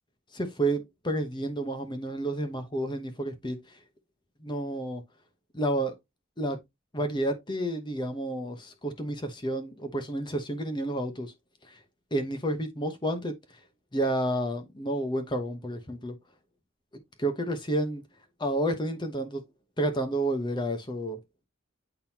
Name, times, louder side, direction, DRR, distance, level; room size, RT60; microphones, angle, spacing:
voice 1, 0.3-3.6 4.4-5.0 5.5-5.9 6.4-6.6 6.9-11.3 11.7-11.8 12.1-13.3 13.9-16.1 17.2-18.0 18.4-19.4 19.8-21.2, right 1 dB, 20° left, 1.0 m, -30 dB
8.9 x 3.9 x 2.8 m
head